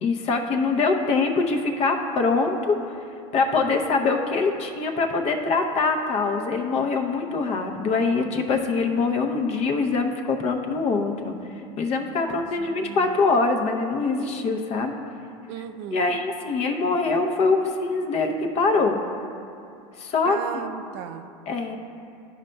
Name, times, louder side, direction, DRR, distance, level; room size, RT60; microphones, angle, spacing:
voice 1, 0.0-3.0 3.3-11.4 11.8-14.9 15.9-19.0 20.0-20.4 21.5-21.8, left 4 dB, 45° left, 4 dB, 0.7 m, -23 dB
voice 2, 12.2-13.2 15.5-16.2 20.2-21.3, right 9 dB, 70° right, 9 dB, 0.4 m, -36 dB
11.5 x 5.1 x 2.2 m, 2.6 s
supercardioid pair, 115°, 15 cm